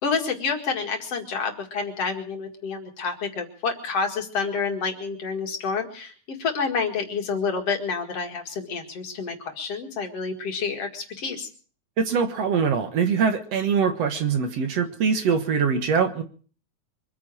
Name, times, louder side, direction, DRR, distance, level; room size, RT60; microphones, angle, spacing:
voice 1, 0.0-11.5, left 5 dB, 55° left, 4 dB, 2.9 m, -28 dB
voice 2, 12.0-16.2, right 6 dB, 60° right, 7 dB, 2.3 m, -23 dB
24.5 x 9.5 x 6.3 m, 0.43 s
omnidirectional pair, 3.5 m